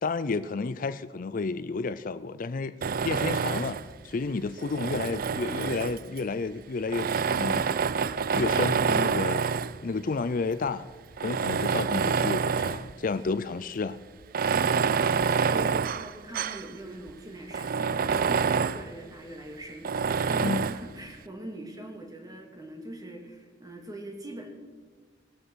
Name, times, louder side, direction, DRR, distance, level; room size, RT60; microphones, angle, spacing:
voice 1, 0.0-2.7 3.0-3.8 4.0-7.1 7.3-7.7 8.3-9.6 9.8-10.9 11.2-14.0 20.4-20.7, left 4 dB, 50° left, 0.5 m, -31 dB
Tools, 2.8-3.9 4.6-6.2 6.9-9.8 10.5-10.6 11.1-12.9 13.3-13.4 14.2-16.7 17.1-17.2 17.5-18.9 19.8-20.9, right 6 dB, 50° right, 0.4 m, -27 dB
voice 2, 14.5-24.5, right 1 dB, 20° right, 2.6 m, -42 dB
19.5 x 7.9 x 8.0 m
head